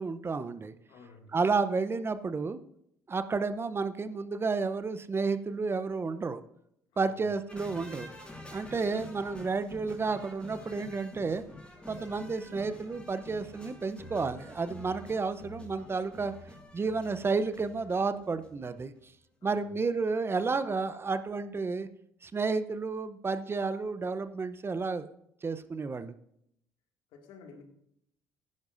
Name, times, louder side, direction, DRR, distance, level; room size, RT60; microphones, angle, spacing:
voice 1, 0.0-0.7 1.3-2.6 3.1-6.4 7.0-8.1 8.5-11.4 11.9-16.3 16.7-18.9 19.4-21.9 22.2-25.1 25.4-26.1, right 4 dB, 30° right, 12 dB, 0.8 m, -31 dB
voice 2, 0.9-1.4 7.1-7.2 19.4-19.8 27.1-27.6, left 4 dB, 70° left, 3 dB, 2.2 m, -52 dB
sound 1, 7.5-18.7 19.0-19.1, left 2 dB, 10° left, 4.6 m, -48 dB
15.5 x 10.5 x 2.6 m, 0.73 s
hypercardioid pair, 60°, 8 cm